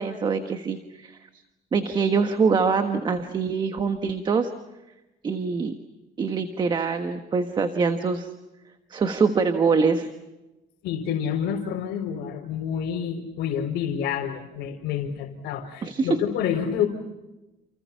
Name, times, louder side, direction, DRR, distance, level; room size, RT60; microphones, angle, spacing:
voice 1, 0.0-1.4 1.7-4.5 5.2-5.7 6.2-8.3 8.9-10.1 15.8-16.1, right 5 dB, 25° right, 7 dB, 1.4 m, -24 dB
voice 2, 10.8-16.9, left 8 dB, 80° left, 0 dB, 4.2 m, -28 dB
29.5 x 29.5 x 5.8 m, 1.0 s
cardioid pair, 175°, 17 cm